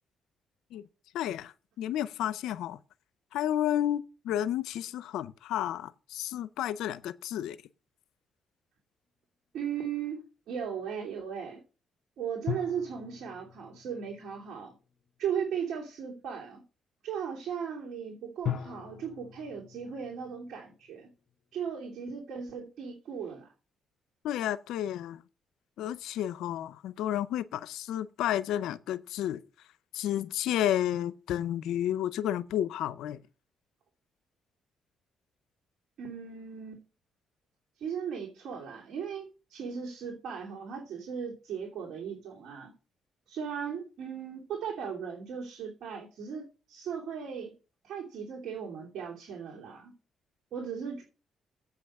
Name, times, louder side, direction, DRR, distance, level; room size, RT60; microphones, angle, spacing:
voice 1, 1.1-2.8 3.3-7.6 24.2-25.2 25.8-29.4 29.9-33.2, left 11 dB, 85° left, 0.5 m, -31 dB
voice 2, 9.5-11.6 12.2-14.7 15.2-16.6 17.0-21.1 21.5-23.5 36.0-36.8 37.8-42.7 43.3-47.5 47.8-49.9 50.5-51.0, right 7 dB, 70° right, 2.9 m, -37 dB
sound 1, 12.5-15.1 18.4-21.1 21.3-21.4, left 10 dB, 55° left, 2.2 m, -40 dB
8.2 x 5.8 x 6.5 m
cardioid pair, 90°, 0 cm